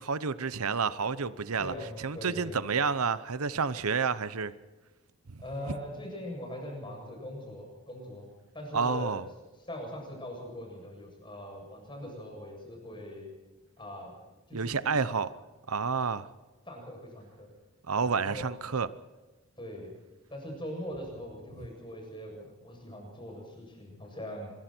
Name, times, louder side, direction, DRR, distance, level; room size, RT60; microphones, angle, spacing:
voice 1, 0.0-4.5 5.3-5.4 8.7-9.2 14.5-15.3 15.7-16.3 17.9-18.9, right 5 dB, 85° right, 0.9 m, -30 dB
voice 2, 1.6-2.7 5.4-9.1 9.6-13.3 13.8-14.1 14.5-15.0 16.7-17.5 18.0-18.4 19.6-20.0 20.3-24.5, left 1 dB, 20° left, 7.7 m, -41 dB
26.5 x 22.0 x 4.5 m
head